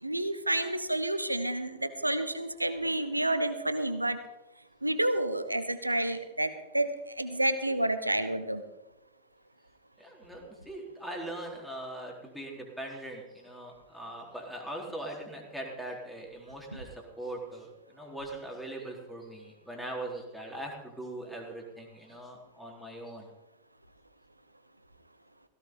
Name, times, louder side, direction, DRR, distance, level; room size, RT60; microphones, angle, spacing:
voice 1, 0.0-4.2 4.8-8.6 16.7-16.8, right 1 dB, 85° right, 11 dB, 1.2 m, -30 dB
voice 2, 10.0-23.3, right 1 dB, ahead, -2 dB, 4.0 m, -41 dB
17.0 x 16.5 x 3.9 m, 1.0 s
figure-of-eight pair, 90°, 0 cm